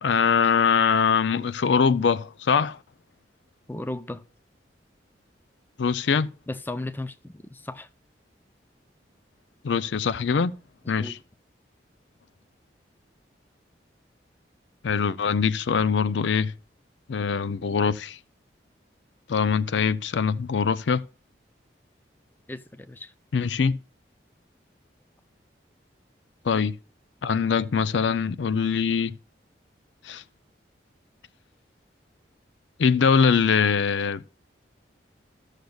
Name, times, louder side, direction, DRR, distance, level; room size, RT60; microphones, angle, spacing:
voice 1, 0.0-2.8 5.8-6.3 9.6-10.5 10.9-11.2 14.8-16.5 17.1-18.2 19.3-21.0 23.3-23.8 26.4-26.7 27.2-29.1 30.0-30.2 32.8-34.4, left 6 dB, 80° left, 0.5 m, -23 dB
voice 2, 3.7-4.2 6.5-7.9 11.0-11.2 22.5-23.1, left 2 dB, 10° left, 0.4 m, -35 dB
14.5 x 6.5 x 2.3 m
head